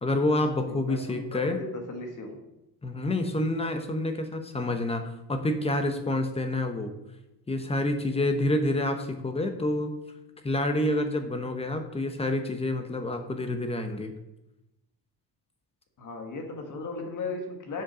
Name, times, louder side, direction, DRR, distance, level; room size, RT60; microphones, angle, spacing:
voice 1, 0.0-1.6 2.8-6.9 7.5-9.9 10.4-14.1, left 1 dB, 15° left, 7 dB, 0.9 m, -28 dB
voice 2, 0.7-2.4 16.0-17.8, left 3 dB, 45° left, 4 dB, 1.8 m, -36 dB
7.6 x 7.5 x 6.2 m, 0.93 s
cardioid pair, 170°, 41 cm